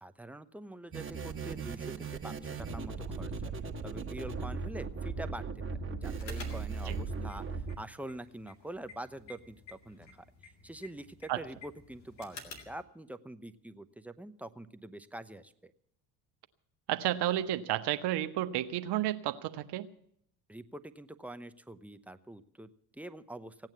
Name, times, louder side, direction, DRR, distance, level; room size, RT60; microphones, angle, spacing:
voice 1, 0.0-3.3 3.8-5.6 6.0-7.4 7.8-10.1 10.6-15.7 20.5-23.7, right 1 dB, 5° right, 11 dB, 0.8 m, -45 dB
sound 1, 0.9-7.7, right 4 dB, 25° right, 1.7 m, -38 dB
sound 2, 6.2-12.8, left 4 dB, 85° left, 2.3 m, -52 dB
voice 2, 16.9-19.9, right 13 dB, 55° right, 10 dB, 0.9 m, -31 dB
16.5 x 9.0 x 8.5 m, 0.69 s
hypercardioid pair, 65°, 50 cm